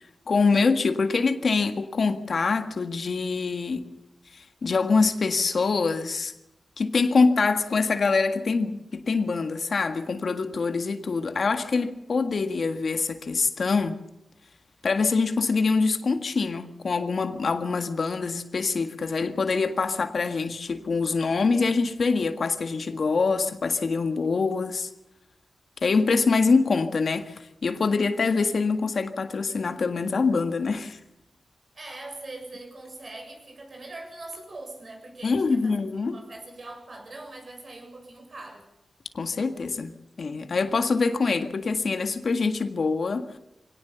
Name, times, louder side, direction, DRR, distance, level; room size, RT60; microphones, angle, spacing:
voice 1, 0.3-3.9 4.3-6.3 6.8-14.0 14.8-24.9 25.8-31.0 35.2-36.1 39.1-43.3, left 4 dB, 60° left, 1.7 m, -25 dB
voice 2, 31.7-35.8 36.1-38.6, right 2 dB, 50° right, 7.3 m, -42 dB
24.0 x 18.0 x 7.0 m
wide cardioid pair, 105°, 0 cm